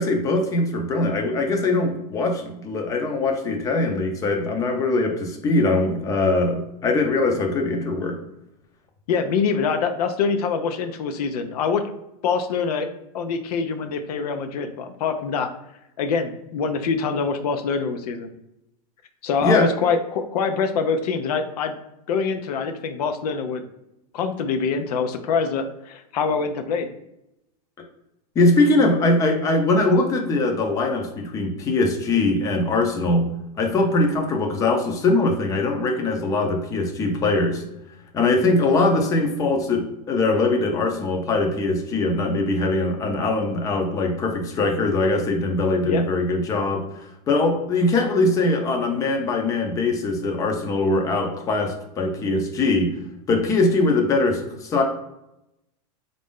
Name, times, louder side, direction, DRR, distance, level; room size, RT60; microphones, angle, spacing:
voice 1, 0.0-8.2 19.4-19.7 28.4-33.3 33.6-37.6 38.1-46.8 47.3-52.9 53.3-54.8, left 2 dB, 15° left, 3 dB, 0.5 m, -21 dB
voice 2, 9.1-11.8 12.2-12.9 13.1-15.5 16.0-18.3 19.2-21.8 22.1-23.6 24.1-26.9 45.8-46.1, left 5 dB, 85° left, 8 dB, 0.6 m, -24 dB
4.1 x 2.6 x 3.5 m, 0.87 s
supercardioid pair, 160°, 20 cm